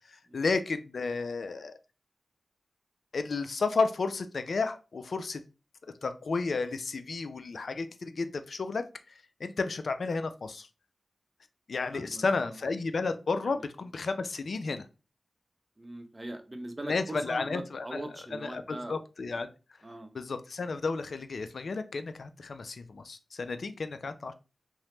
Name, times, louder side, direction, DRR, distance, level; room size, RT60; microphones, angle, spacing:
voice 1, 0.1-1.8 3.1-5.4 6.0-8.9 9.4-10.7 11.7-14.9 16.9-18.0 18.4-19.5 20.1-24.3, left 4 dB, 75° left, 10 dB, 0.3 m, -32 dB
voice 2, 11.9-12.6 13.4-13.6 15.8-19.0 19.8-20.1, right 1 dB, 25° right, 6 dB, 0.6 m, -41 dB
2.9 x 2.0 x 3.1 m, 0.32 s
cardioid pair, 60°, 0 cm